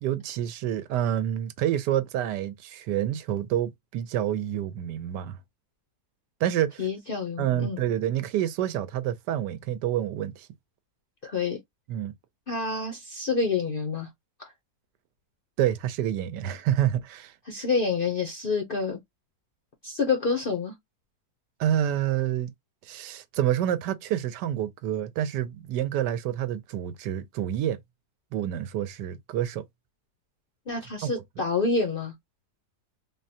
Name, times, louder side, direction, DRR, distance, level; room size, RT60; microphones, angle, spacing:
voice 1, 0.0-5.4 6.4-6.9 7.4-10.5 11.9-12.1 15.6-17.3 21.6-22.5 22.9-27.8 28.3-29.6 31.0-31.4, right 11 dB, 90° right, 1.2 m, -28 dB
voice 2, 6.8-7.8 11.2-11.6 12.5-14.1 14.4-14.5 17.5-19.0 19.8-20.7 30.7-32.1, left 4 dB, 55° left, 0.6 m, -28 dB
3.7 x 2.1 x 2.7 m
omnidirectional pair, 1.8 m